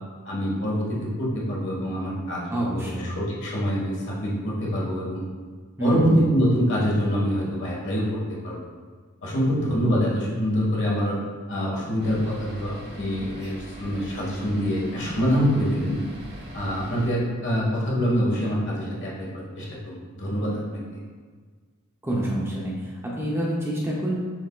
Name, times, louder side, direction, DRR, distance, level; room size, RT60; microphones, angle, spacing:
voice 1, 0.2-5.2 5.8-8.2 8.4-8.6 9.2-11.2 11.5-16.0 16.5-21.0, equal, 55° left, -4 dB, 1.3 m, -25 dB
voice 2, 2.5-3.1 5.8-6.1 22.0-24.2, right 1 dB, 10° right, -4 dB, 0.6 m, -27 dB
sound 1, 12.0-17.1, equal, 50° right, 0.8 m, -42 dB
6.3 x 3.4 x 2.2 m, 1.6 s
head